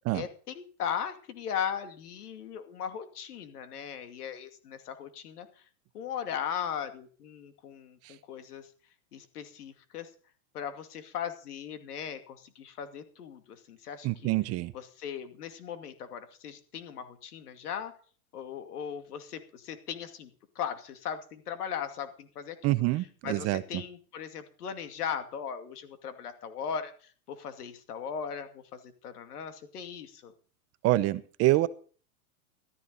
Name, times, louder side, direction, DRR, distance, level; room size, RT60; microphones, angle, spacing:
voice 1, 0.1-5.5 5.9-8.7 9.1-10.1 10.5-14.3 14.7-17.9 18.3-20.3 20.6-22.8 23.2-30.3, left 8 dB, 85° left, 8 dB, 2.5 m, -38 dB
voice 2, 14.0-14.7 22.6-23.8 30.8-31.7, right 18 dB, 35° right, 15 dB, 0.7 m, -26 dB
14.0 x 12.5 x 4.0 m, 0.41 s
hypercardioid pair, 125°, 45 cm